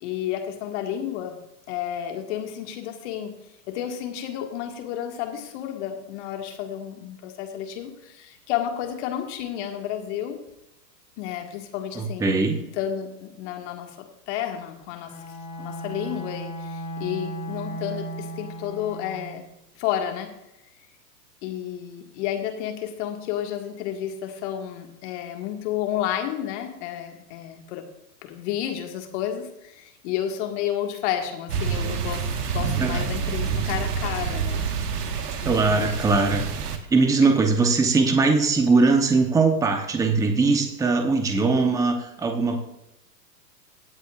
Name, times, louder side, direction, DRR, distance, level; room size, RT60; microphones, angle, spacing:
voice 1, 0.0-1.4 1.7-3.3 3.7-10.4 11.2-12.3 12.7-15.2 15.6-19.5 19.8-20.3 21.4-27.9 28.2-32.3 32.5-34.6 35.4-36.1 37.2-37.3, left 10 dB, 45° left, 4 dB, 2.0 m, -31 dB
voice 2, 12.0-12.6 32.8-32.9 35.4-36.4 36.9-42.6, right 3 dB, 5° right, 4 dB, 0.9 m, -20 dB
Bowed string instrument, 15.1-19.4, right 1 dB, 10° left, 2.9 m, -35 dB
sound 1, 31.5-36.8, right 6 dB, 70° right, 1.6 m, -27 dB
17.0 x 8.1 x 2.5 m, 0.86 s
hypercardioid pair, 120°, 49 cm